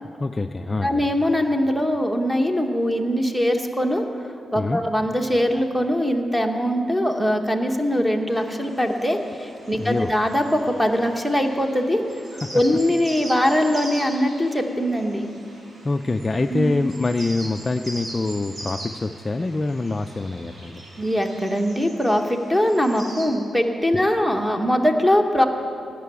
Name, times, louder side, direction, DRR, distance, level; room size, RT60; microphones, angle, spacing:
voice 1, 0.2-1.0 4.6-4.8 9.8-10.1 12.3-12.6 15.8-20.8, left 3 dB, 20° left, 7 dB, 0.3 m, -25 dB
voice 2, 0.8-4.1 4.5-12.0 12.5-15.3 16.5-16.8 21.0-25.5, equal, ahead, 4 dB, 1.0 m, -22 dB
sound 1, 8.3-23.2, right 1 dB, 40° right, 4.1 m, -41 dB
17.0 x 6.8 x 9.3 m, 2.5 s
wide cardioid pair, 175°, 0 cm